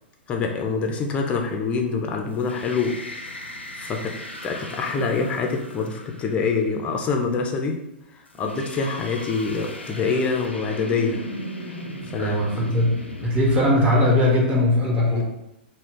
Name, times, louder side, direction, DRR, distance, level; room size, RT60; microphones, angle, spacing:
voice 1, 0.3-3.0 3.8-4.1 4.4-7.8 8.4-11.2 12.1-12.7 15.1-15.2, left 4 dB, 20° left, 2 dB, 0.4 m, -25 dB
sound 1, 2.3-6.8 8.3-13.7, equal, 85° left, 0.4 m, -37 dB
voice 2, 12.2-13.0 13.2-15.2, left 1 dB, 20° right, -4 dB, 0.9 m, -19 dB
2.3 x 2.1 x 3.6 m, 0.86 s
figure-of-eight pair, 105°, 6 cm